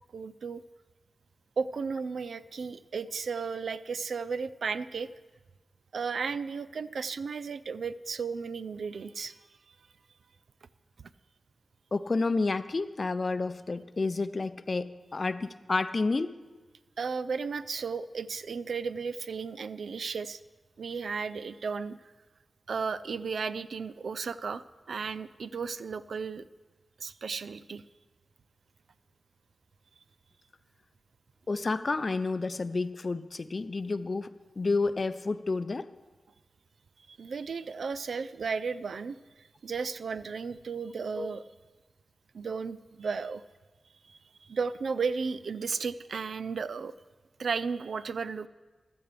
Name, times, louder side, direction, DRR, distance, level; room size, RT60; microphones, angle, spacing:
voice 1, 0.1-0.6 1.6-5.1 5.9-9.4 17.0-20.4 20.8-22.0 22.7-26.4 27.0-27.8 37.1-41.4 42.3-43.4 44.1-46.9 47.4-48.5, right 5 dB, 85° right, 14 dB, 0.4 m, -34 dB
voice 2, 11.9-16.4 31.5-34.3 34.6-35.9 41.2-41.3, left 3 dB, 45° left, 13 dB, 0.5 m, -30 dB
15.5 x 12.5 x 3.4 m, 1.3 s
wide cardioid pair, 70°, 0 cm